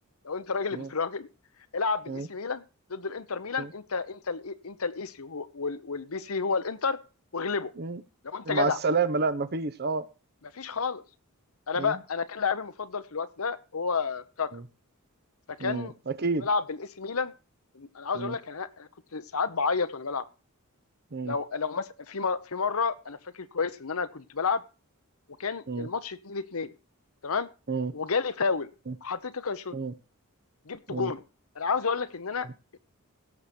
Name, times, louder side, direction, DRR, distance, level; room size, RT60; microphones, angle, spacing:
voice 1, 0.2-1.3 1.7-2.6 2.9-7.0 7.3-7.7 8.2-8.8 10.5-11.0 11.7-14.5 15.5-15.9 16.4-17.3 17.7-20.2 21.2-24.6 25.4-26.7 27.2-27.5 27.9-28.7 29.0-29.7 30.7-31.2 31.6-32.5 32.7-32.8, left 5 dB, 70° left, 0.9 m, -30 dB
voice 2, 8.4-10.1 11.8-12.0 14.5-14.6 15.6-16.5 18.1-18.3 21.1-21.3 25.7-25.9 27.7-27.9 28.9-29.0 29.7-29.9 30.9-31.1, right 4 dB, 50° right, 0.9 m, -29 dB
17.0 x 6.8 x 4.4 m
head